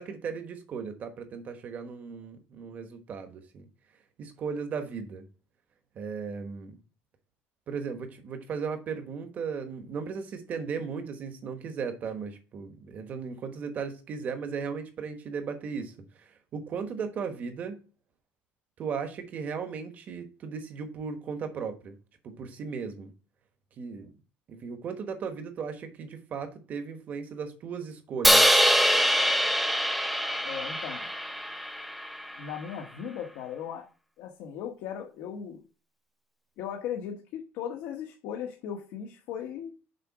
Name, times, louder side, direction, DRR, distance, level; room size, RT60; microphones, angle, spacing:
voice 1, 0.0-3.7 4.2-5.2 5.9-6.8 7.7-17.8 18.8-21.9 22.2-23.1 23.8-24.1 24.5-28.5, right 6 dB, 35° right, 1.2 m, -36 dB
Crash cymbal, 28.2-32.4, equal, ahead, 0.6 m, -24 dB
voice 2, 30.4-31.1 32.4-33.9 34.2-35.6 36.6-39.7, left 8 dB, 75° left, 1.1 m, -37 dB
6.7 x 4.9 x 4.7 m
cardioid pair, 170°, 5 cm